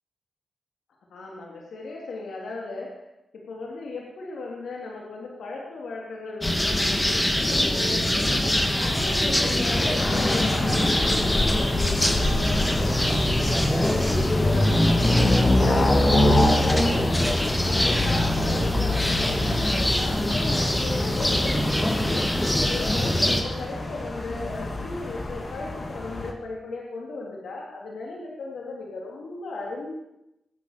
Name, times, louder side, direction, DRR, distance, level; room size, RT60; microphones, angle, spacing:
voice 1, 1.1-3.0 3.5-17.1 17.6-29.9, left 3 dB, 85° left, -2 dB, 3.4 m, -36 dB
sound 1, 6.4-23.4, left 1 dB, 15° left, 2.3 m, -24 dB
sound 2, 10.0-26.3, left 1 dB, 45° left, 2.8 m, -25 dB
21.5 x 8.1 x 6.8 m, 0.88 s
cardioid pair, 65°, 0 cm